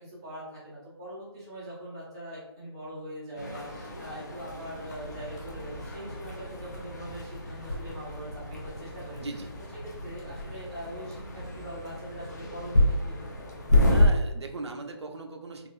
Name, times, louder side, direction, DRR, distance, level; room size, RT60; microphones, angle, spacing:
voice 1, 0.0-9.2 9.8-13.5, equal, 10° right, -10 dB, 0.4 m, -42 dB
sound 1, 3.4-14.1, left 1 dB, 40° left, 0.6 m, -29 dB
voice 2, 9.2-9.5 13.9-15.7, right 3 dB, 75° right, 3 dB, 0.6 m, -39 dB
3.4 x 2.4 x 2.5 m, 0.96 s
hypercardioid pair, 175°, 14 cm